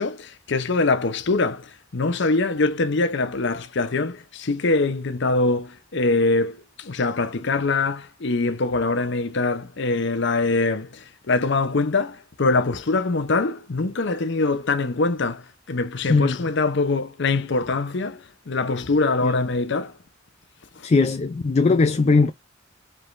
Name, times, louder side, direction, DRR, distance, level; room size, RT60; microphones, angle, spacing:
voice 1, 0.0-1.7 1.9-10.9 11.3-15.4 15.7-18.2 18.5-19.9, left 3 dB, 65° left, 0.7 m, -23 dB
voice 2, 20.8-22.3, left 4 dB, 35° left, 0.4 m, -19 dB
4.9 x 3.6 x 2.5 m
head